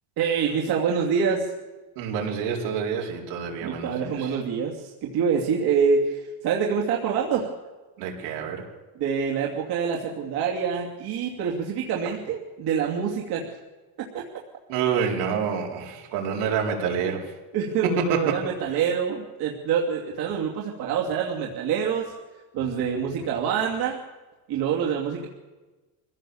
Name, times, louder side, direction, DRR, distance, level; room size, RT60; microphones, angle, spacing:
voice 1, 0.2-1.5 3.6-7.5 8.9-13.5 14.0-14.2 17.5-22.1 22.5-24.0 24.5-25.3, right 6 dB, 50° right, -2 dB, 2.9 m, -26 dB
voice 2, 2.0-3.9 4.2-4.3 8.0-8.6 14.7-17.2 17.8-18.4, right 6 dB, 70° right, 0 dB, 4.7 m, -27 dB
24.0 x 16.5 x 7.2 m, 1.2 s
cardioid pair, 160°, 49 cm